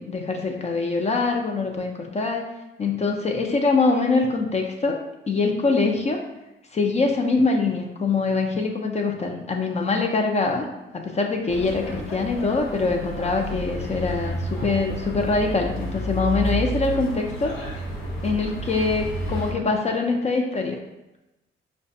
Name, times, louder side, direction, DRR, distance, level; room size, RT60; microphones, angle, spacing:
voice 1, 0.0-2.4 2.8-4.9 5.3-6.2 6.7-10.7 10.9-17.6 18.2-20.8, left 3 dB, 35° left, 2 dB, 0.5 m, -23 dB
sound 1, 11.5-19.5, right 1 dB, 80° left, 0.9 m, -31 dB
4.8 x 2.2 x 2.6 m, 0.98 s
cardioid pair, 90°, 20 cm